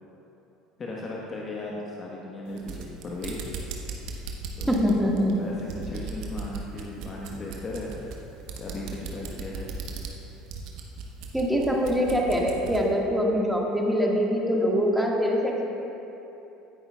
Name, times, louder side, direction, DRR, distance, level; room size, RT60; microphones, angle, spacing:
voice 1, 0.8-3.6 4.6-5.1 5.4-7.9 8.6-9.7 11.5-11.7 12.0-12.1, left 2 dB, 30° left, -3 dB, 1.2 m, -37 dB
sound 1, 2.5-12.9, right 4 dB, 60° right, 1.0 m, -38 dB
voice 2, 4.7-5.5 11.3-15.7, equal, 5° right, -2 dB, 1.7 m, -24 dB
15.5 x 9.7 x 2.3 m, 3.0 s
figure-of-eight pair, 65°, 0 cm